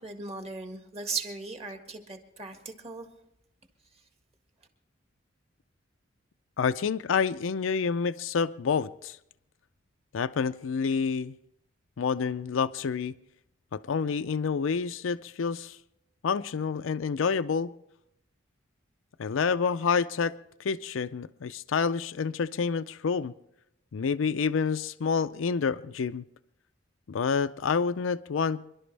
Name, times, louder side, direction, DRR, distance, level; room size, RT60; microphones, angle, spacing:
voice 1, 0.0-3.1, right 4 dB, 30° right, 5 dB, 1.7 m, -37 dB
voice 2, 6.6-9.2 10.1-11.3 12.0-13.1 13.7-15.8 16.2-17.7 19.2-20.3 20.6-23.3 23.9-26.2 27.1-28.6, left 5 dB, 80° left, 14 dB, 0.4 m, -28 dB
26.5 x 12.0 x 3.3 m, 0.81 s
head